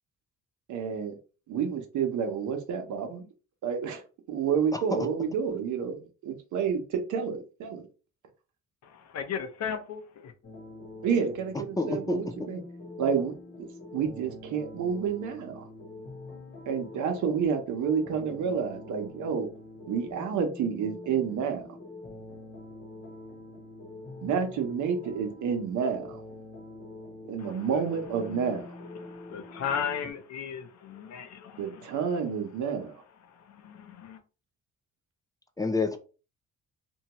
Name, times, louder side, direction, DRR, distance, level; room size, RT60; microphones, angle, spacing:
voice 1, 0.7-1.1 1.5-3.3 3.6-4.0 4.3-7.9 11.0-12.6 13.0-13.7 13.9-15.7 16.7-19.5 19.9-21.7 24.2-26.2 27.2-28.7 31.6-33.0, right 6 dB, 75° right, 0.7 m, -29 dB
voice 2, 8.8-10.3 27.4-27.8 28.9-32.0 33.2-34.2, left 7 dB, 60° left, 0.6 m, -36 dB
sound 1, 10.4-30.1, left 2 dB, 40° left, 1.0 m, -45 dB
voice 3, 11.8-12.2 35.6-36.0, left 3 dB, 10° left, 0.3 m, -28 dB
2.7 x 2.2 x 2.9 m
cardioid pair, 90°, 30 cm